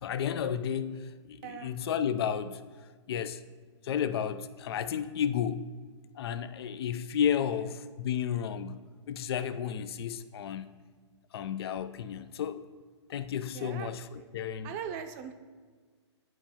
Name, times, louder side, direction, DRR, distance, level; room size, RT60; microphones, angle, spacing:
voice 1, 0.0-2.6 3.1-3.4 3.8-5.7 6.1-10.7 11.3-12.7 13.1-14.7, left 8 dB, 60° left, 12 dB, 0.4 m, -32 dB
voice 2, 1.4-1.8 7.4-7.7 13.5-14.3 14.6-15.3, right 8 dB, 35° right, 7 dB, 0.6 m, -41 dB
11.0 x 4.5 x 2.8 m, 1.5 s
hypercardioid pair, 130°, 15 cm